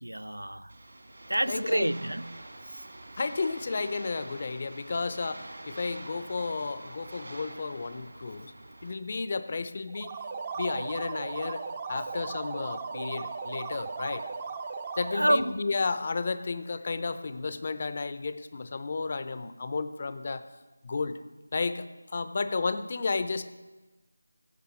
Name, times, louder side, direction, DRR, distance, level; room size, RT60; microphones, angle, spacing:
voice 1, 0.0-0.7 1.3-2.4 2.7-2.8 15.2-15.5, right 1 dB, 85° right, 20 dB, 0.3 m, -28 dB
sound 1, 0.7-8.9, right 1 dB, 60° right, 2.1 m, -46 dB
voice 2, 1.5-1.9 3.2-8.5 8.8-10.2 10.6-14.3 15.0-20.4 20.8-21.2 21.5-21.9 22.1-23.4, left 4 dB, 35° left, 12 dB, 0.6 m, -32 dB
sound 2, 9.9-15.6, right 5 dB, 20° right, 0.6 m, -37 dB
15.5 x 7.4 x 4.4 m, 1.2 s
figure-of-eight pair, 165°, 0 cm